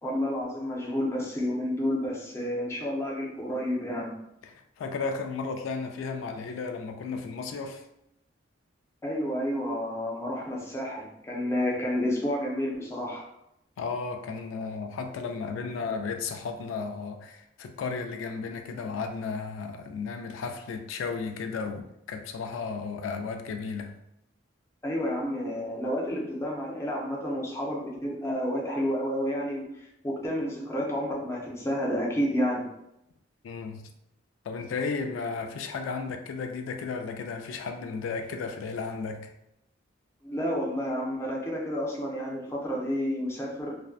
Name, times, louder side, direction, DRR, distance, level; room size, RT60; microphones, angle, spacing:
voice 1, 0.0-4.1 9.0-13.3 24.8-32.7 40.2-43.8, equal, 15° left, 0.5 m, -30 dB
voice 2, 4.4-7.8 13.8-24.0 33.4-33.9 34.5-39.3, left 4 dB, 85° left, 0.3 m, -34 dB
2.6 x 2.1 x 2.3 m
head